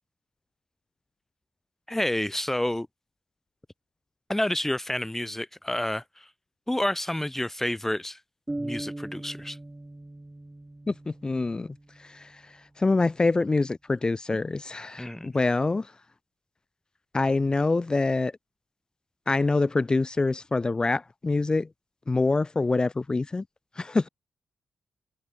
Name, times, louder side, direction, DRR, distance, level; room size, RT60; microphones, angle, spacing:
voice 1, 1.9-2.9 4.3-6.3 6.7-8.2 8.6-9.6 15.0-15.4, left 1 dB, 10° left, 1.3 m, -29 dB
sound 1, 8.5-12.2, right 2 dB, 15° right, 0.6 m, -39 dB
voice 2, 10.9-11.7 12.1-12.2 12.8-15.9 17.1-18.3 19.3-21.7 22.1-23.4 23.8-24.1, left 3 dB, 30° left, 0.4 m, -25 dB
supercardioid pair, 45°, 3 cm